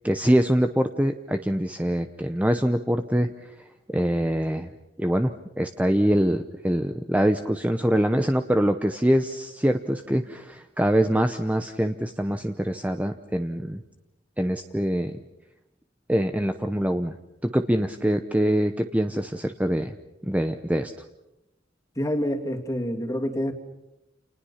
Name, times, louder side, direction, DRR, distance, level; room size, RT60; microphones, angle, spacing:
voice 1, 0.0-3.5 3.9-4.7 5.0-13.8 14.4-15.2 16.1-17.1 17.4-19.9 20.2-20.9, equal, 10° right, 7 dB, 0.8 m, -24 dB
voice 2, 22.0-23.5, equal, 15° left, 4 dB, 2.7 m, -27 dB
30.0 x 29.0 x 5.8 m, 0.92 s
head